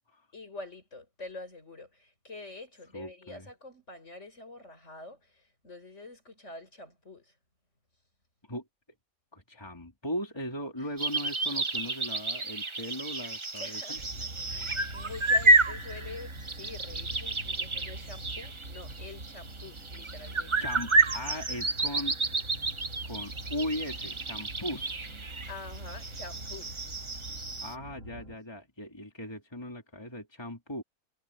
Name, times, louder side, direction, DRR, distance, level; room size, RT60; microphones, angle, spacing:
voice 1, 0.3-7.3 13.6-20.6 25.5-26.8, left 2 dB, 50° left, 6.0 m, -46 dB
voice 2, 2.9-3.5 8.5-8.6 9.3-14.0 15.2-15.3 20.6-22.2 23.1-25.1 27.6-30.8, left 1 dB, 15° left, 3.9 m, -38 dB
sound 1, 11.0-27.7, right 2 dB, 25° right, 0.8 m, -30 dB
sound 2, 14.0-28.4, right 1 dB, 55° right, 2.9 m, -44 dB
omnidirectional pair, 1.6 m